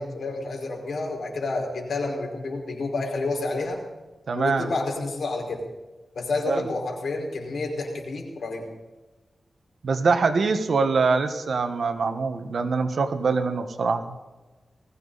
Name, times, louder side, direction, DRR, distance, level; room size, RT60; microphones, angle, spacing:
voice 1, 0.0-3.8 4.4-5.6 6.1-8.7, left 3 dB, 75° left, 0 dB, 5.2 m, -29 dB
voice 2, 4.3-4.7 6.5-6.6 9.8-14.1, right 4 dB, 70° right, 8 dB, 1.5 m, -24 dB
20.5 x 15.5 x 4.2 m, 1.2 s
wide cardioid pair, 90°, 0 cm